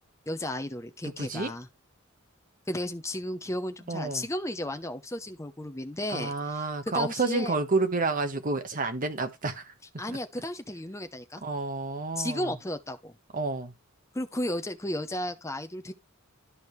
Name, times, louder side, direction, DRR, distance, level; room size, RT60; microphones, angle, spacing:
voice 1, 0.3-1.7 2.7-7.5 10.0-11.4 12.2-13.1 14.1-15.9, left 1 dB, 15° left, 0.8 m, -34 dB
voice 2, 1.0-1.5 3.9-4.3 6.1-9.7 10.1-10.2 11.4-12.5 13.3-13.7, right 3 dB, 40° right, 1.3 m, -30 dB
12.5 x 5.0 x 3.3 m
head